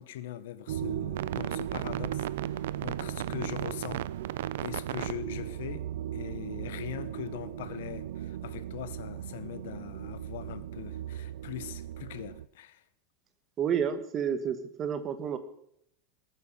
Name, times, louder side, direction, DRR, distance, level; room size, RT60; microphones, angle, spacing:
voice 1, 0.0-2.2 2.8-4.1 4.6-5.9 6.1-12.8, left 11 dB, 70° left, 1.2 m, -41 dB
sound 1, 0.7-12.5, right 12 dB, 75° right, 0.5 m, -36 dB
voice 2, 13.6-15.4, right 8 dB, 25° right, 1.4 m, -30 dB
19.0 x 9.3 x 6.2 m
supercardioid pair, 170°, 0 cm